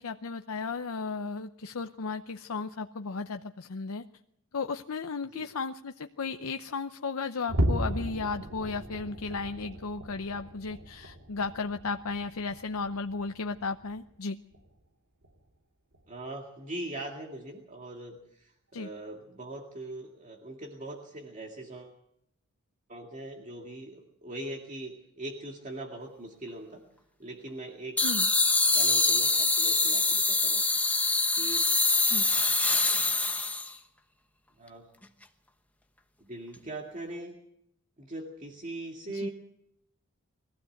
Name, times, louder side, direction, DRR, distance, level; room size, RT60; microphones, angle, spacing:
voice 1, 0.0-4.0 4.5-14.4 18.7-18.9 28.0-28.3 32.1-32.3 39.1-39.3, left 4 dB, 80° left, 7 dB, 0.7 m, -35 dB
sound 1, 7.5-14.1 14.5-14.8 15.2-15.4 15.9-16.0, equal, 80° right, 2.6 m, -35 dB
voice 2, 16.1-22.0 22.9-26.8 27.2-28.3 28.7-30.6 31.3-31.7 34.6-34.9 36.2-37.4 38.0-39.3, right 1 dB, 35° right, 1 dB, 2.1 m, -41 dB
sound 2, 28.0-33.7, left 3 dB, 5° left, 1.1 m, -25 dB
21.5 x 15.5 x 7.8 m, 0.76 s
head